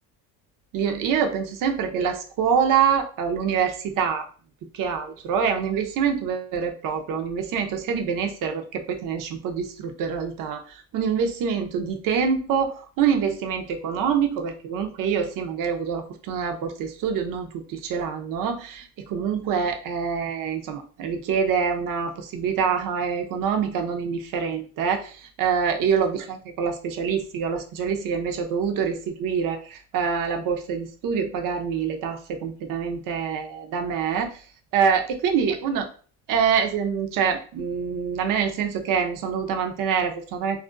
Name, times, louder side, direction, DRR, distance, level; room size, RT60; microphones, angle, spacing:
voice 1, 0.7-4.3 4.7-34.4 34.7-35.9 36.3-40.6, right 7 dB, 60° right, 5 dB, 0.6 m, -25 dB
2.4 x 2.1 x 2.4 m, 0.40 s
cardioid pair, 95°, 37 cm